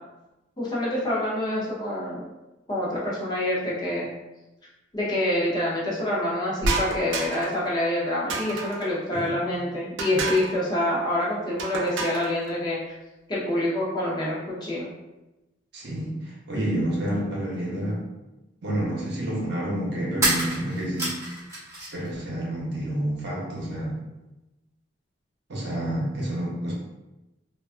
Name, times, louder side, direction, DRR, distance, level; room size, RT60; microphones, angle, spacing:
voice 1, 0.6-2.2 2.7-4.1 4.9-12.8 13.3-14.9, left 1 dB, 25° left, -6 dB, 0.6 m, -26 dB
sound 1, 6.6-7.6 8.3-8.9 10.0-10.6 11.6-12.3, right 3 dB, 85° right, 0.4 m, -29 dB
voice 2, 15.7-18.0 18.6-21.2 21.9-24.0 25.5-26.7, right 1 dB, 65° right, -4 dB, 0.8 m, -29 dB
sound 2, 17.9-18.0 20.1-22.1 22.4-23.2, right 1 dB, 15° right, 1.1 m, -29 dB
2.4 x 2.3 x 2.4 m, 1.0 s
head